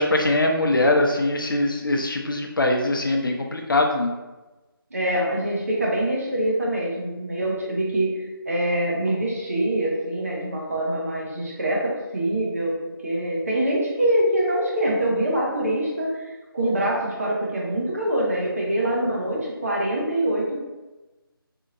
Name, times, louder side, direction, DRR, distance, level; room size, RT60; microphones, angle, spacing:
voice 1, 0.0-4.1, left 2 dB, 60° left, 2 dB, 0.6 m, -22 dB
voice 2, 4.9-12.8 13.0-20.6, right 1 dB, 40° right, -3 dB, 0.8 m, -24 dB
4.3 x 2.8 x 2.5 m, 1.1 s
figure-of-eight pair, 175°, 12 cm